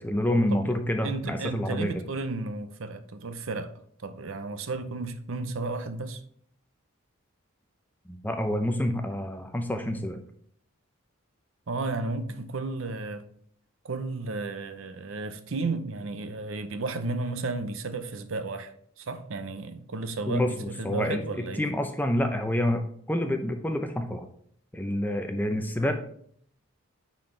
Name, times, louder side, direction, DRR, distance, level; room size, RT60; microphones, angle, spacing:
voice 1, 0.0-2.0 8.1-10.2 20.3-21.2 21.6-22.8 23.1-24.3 24.7-25.9, left 1 dB, 10° left, 0.6 m, -28 dB
voice 2, 1.0-3.7 4.0-6.2 11.7-13.3 13.8-18.7 19.0-21.6, right 3 dB, 65° right, 0.6 m, -33 dB
9.3 x 4.3 x 3.3 m
head